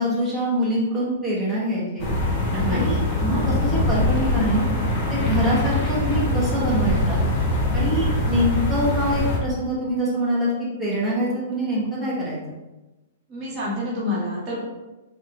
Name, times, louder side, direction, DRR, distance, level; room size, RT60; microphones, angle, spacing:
voice 1, 0.0-2.1 2.7-4.6 5.1-7.2 7.7-12.4, equal, ahead, -9 dB, 1.2 m, -24 dB
sound 1, 2.0-9.4, left 1 dB, 30° left, 0.9 m, -23 dB
voice 2, 2.5-2.9 13.3-14.6, left 1 dB, 30° right, -6 dB, 1.0 m, -27 dB
3.7 x 2.1 x 3.0 m, 1.1 s
hypercardioid pair, 110°, 0 cm